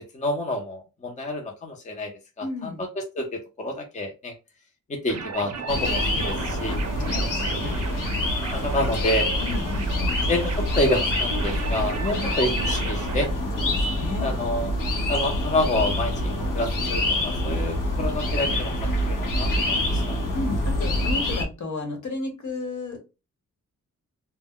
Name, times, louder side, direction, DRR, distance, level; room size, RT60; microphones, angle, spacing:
voice 1, 0.1-2.1 2.4-2.7 3.1-4.3 4.9-6.8 7.6-8.0 8.5-9.3 10.2-13.3 14.2-14.7 15.1-16.1 16.5-20.2, left 1 dB, 25° left, 2 dB, 0.6 m, -28 dB
voice 2, 2.4-2.8 6.7-8.2 9.4-10.1 12.1-12.3 13.5-14.3 20.3-23.0, left 3 dB, 65° left, 2 dB, 1.0 m, -34 dB
sound 1, 5.1-13.3, right 6 dB, 60° right, 0.5 m, -35 dB
sound 2, 5.7-21.4, left 1 dB, 85° left, 0.7 m, -26 dB
2.1 x 2.1 x 3.6 m, 0.28 s
wide cardioid pair, 150°, 31 cm